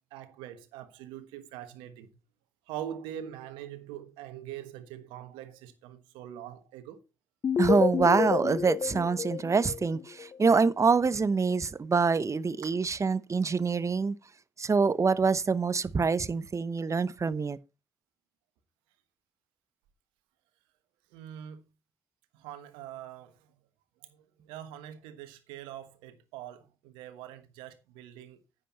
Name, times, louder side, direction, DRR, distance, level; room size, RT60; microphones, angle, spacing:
voice 1, 0.1-2.1 2.7-7.0 12.8-12.9 21.1-21.6 22.3-23.3 24.1-28.4, right 11 dB, 85° right, 1.3 m, -43 dB
sound 1, 7.4-10.4, left 7 dB, 45° left, 0.4 m, -29 dB
voice 2, 7.6-14.2 14.6-17.6, right 5 dB, 40° right, 0.8 m, -25 dB
10.0 x 8.0 x 4.4 m
hypercardioid pair, 40°, 8 cm